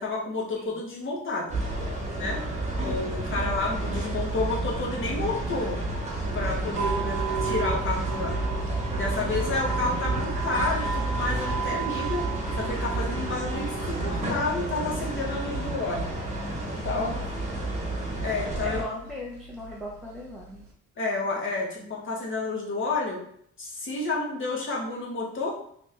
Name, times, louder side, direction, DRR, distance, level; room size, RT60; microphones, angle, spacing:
voice 1, 0.0-1.5 2.1-2.4 2.8-5.8 6.3-8.3 8.9-12.3 12.5-16.1 16.6-17.1 18.2-18.8 21.0-23.2 23.6-25.5, left 3 dB, 40° left, -2 dB, 1.2 m, -30 dB
voice 2, 0.5-0.8 3.3-3.6 9.1-9.5 16.9-17.2 18.6-20.6 21.8-21.9, left 1 dB, ahead, -4 dB, 0.7 m, -39 dB
sound 1, 1.5-18.8, right 2 dB, 20° right, 1.2 m, -30 dB
sound 2, 6.7-20.7, right 6 dB, 60° right, 1.3 m, -36 dB
3.3 x 2.7 x 3.3 m, 0.65 s
cardioid pair, 90°, 30 cm